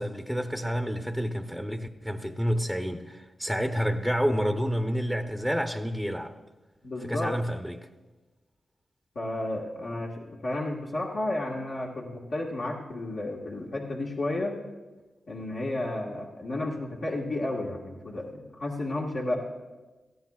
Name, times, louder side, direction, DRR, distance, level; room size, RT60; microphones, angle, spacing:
voice 1, 0.0-6.3 7.0-7.9, equal, ahead, 5 dB, 0.8 m, -29 dB
voice 2, 6.8-7.3 9.1-14.5 15.3-18.3 18.6-19.4, left 2 dB, 65° left, -5 dB, 1.6 m, -32 dB
18.0 x 14.5 x 2.4 m, 1.2 s
supercardioid pair, 45°, 0 cm